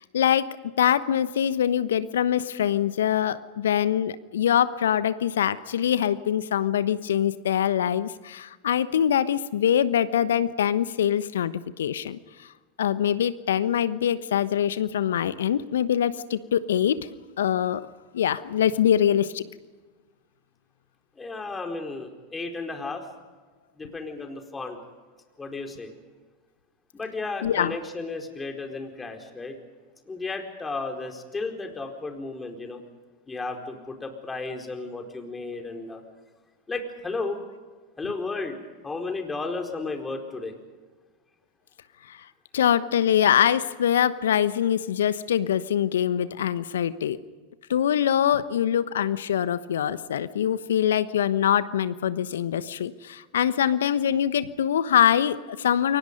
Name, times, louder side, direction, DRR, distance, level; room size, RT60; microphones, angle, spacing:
voice 1, 0.0-12.2 12.8-17.0 17.4-17.8 18.1-19.4 27.4-27.7 42.1-42.2 42.5-47.2 47.7-56.0, left 9 dB, 75° left, 14 dB, 1.1 m, -24 dB
voice 2, 21.2-23.0 23.8-24.8 25.4-25.9 26.9-29.6 30.1-32.8 33.3-36.0 36.7-37.4 38.0-38.6 38.8-40.5, left 3 dB, 15° left, 4 dB, 4.4 m, -33 dB
29.5 x 23.5 x 5.4 m, 1.3 s
figure-of-eight pair, 90°, 0 cm